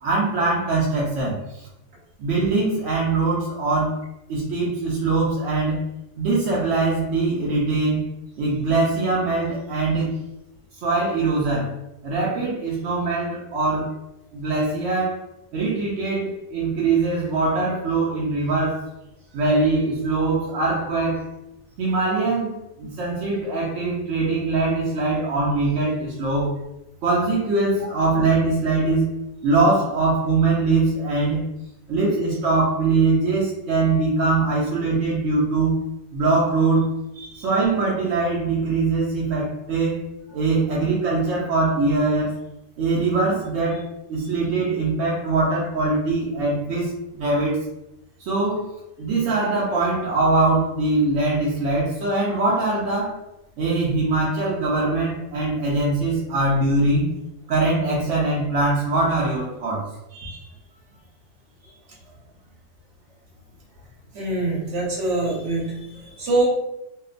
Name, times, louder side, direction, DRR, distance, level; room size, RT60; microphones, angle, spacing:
voice 1, 0.0-1.7 2.2-4.0 4.3-5.8 6.2-8.0 8.4-10.2 10.8-11.8 12.0-13.9 14.3-15.3 15.5-18.9 19.3-21.3 21.8-26.6 27.0-29.1 29.4-31.4 31.9-35.8 36.1-36.9 37.4-42.4 42.8-47.6 48.2-48.7 49.0-53.2 53.6-57.1 57.5-59.9, right 3 dB, 65° right, -5 dB, 0.7 m, -22 dB
voice 2, 64.1-66.5, right 2 dB, 50° right, -5 dB, 1.1 m, -25 dB
2.8 x 2.0 x 2.4 m, 0.87 s
omnidirectional pair, 1.8 m